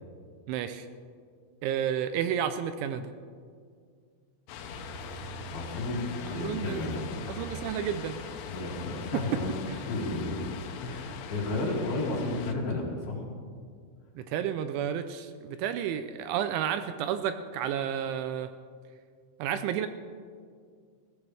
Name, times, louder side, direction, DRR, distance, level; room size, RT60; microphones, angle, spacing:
voice 1, 0.5-0.9 1.6-3.1 6.3-6.8 7.3-8.2 14.2-18.5 19.4-19.9, right 9 dB, 80° right, 9 dB, 2.9 m, -31 dB
sound 1, 4.5-12.6, left 5 dB, 85° left, 3.5 m, -41 dB
voice 2, 5.5-7.1 8.4-9.6 9.9-10.5 10.8-13.2, left 2 dB, 55° left, -3 dB, 4.0 m, -32 dB
21.0 x 16.0 x 3.3 m, 2.1 s
omnidirectional pair, 5.6 m